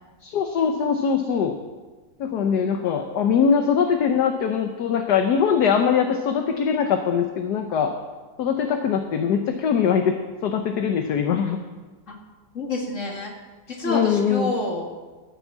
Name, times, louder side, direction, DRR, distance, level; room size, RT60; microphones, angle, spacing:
voice 1, 0.2-1.6 2.2-7.9 8.4-10.2 10.4-11.6 13.8-14.5, left 7 dB, 65° left, 5 dB, 1.4 m, -22 dB
voice 2, 12.5-13.3 13.7-14.9, left 2 dB, 40° left, 0 dB, 2.5 m, -28 dB
13.5 x 8.1 x 7.4 m, 1.3 s
omnidirectional pair, 2.0 m